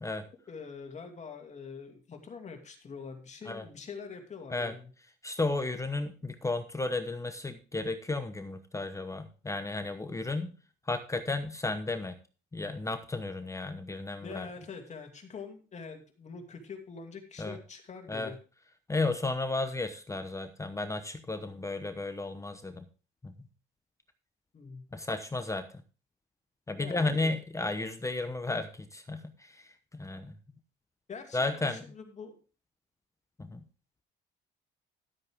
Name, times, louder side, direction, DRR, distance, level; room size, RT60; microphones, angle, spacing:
voice 1, 0.5-4.9 14.2-18.4 24.5-24.8 26.8-27.3 31.1-32.4, left 5 dB, 35° left, 4 dB, 2.4 m, -44 dB
voice 2, 5.2-10.6 10.9-12.2 12.5-14.5 17.4-17.6 18.1-18.3 18.9-22.9 23.2-23.3 24.9-25.7 26.7-30.3 31.3-31.8 33.4-33.6, left 2 dB, 15° left, 8 dB, 0.9 m, -33 dB
12.5 x 8.1 x 3.5 m, 0.35 s
cardioid pair, 110°, 20 cm